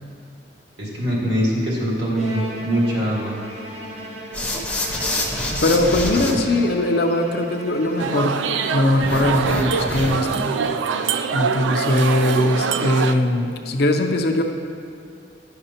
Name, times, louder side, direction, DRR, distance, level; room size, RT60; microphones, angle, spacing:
voice 1, 0.8-3.4 6.1-6.5, equal, 70° right, -5 dB, 1.9 m, -23 dB
Bowed string instrument, 2.2-9.1, right 1 dB, 40° right, 0.8 m, -36 dB
sound 1, 4.3-6.3 9.0-10.4, left 1 dB, 5° left, 0.7 m, -26 dB
voice 2, 5.5-8.4 8.7-10.6 11.3-14.4, left 1 dB, 60° left, 5 dB, 0.6 m, -20 dB
sound 2, 8.0-13.1, right 5 dB, 90° right, 0.3 m, -23 dB
10.0 x 6.7 x 2.9 m, 2.3 s
head